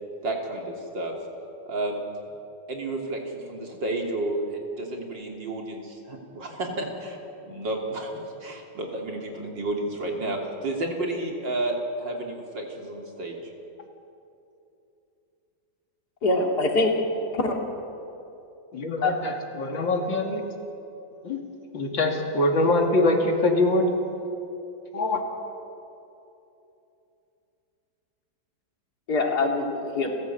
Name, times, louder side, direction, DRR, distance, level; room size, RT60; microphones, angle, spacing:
voice 1, 0.2-1.1 1.7-2.0 2.7-7.2 7.4-8.1 8.4-13.4, right 2 dB, 70° right, 1 dB, 3.6 m, -31 dB
voice 2, 16.2-16.9 17.3-17.6 19.0-19.1 29.1-30.1, left 2 dB, 55° left, 1 dB, 3.1 m, -23 dB
voice 3, 18.7-20.4 21.2-21.5 21.7-23.9 24.9-25.2, left 2 dB, 80° left, 3 dB, 3.1 m, -23 dB
30.0 x 15.5 x 8.4 m, 2.8 s
omnidirectional pair, 2.1 m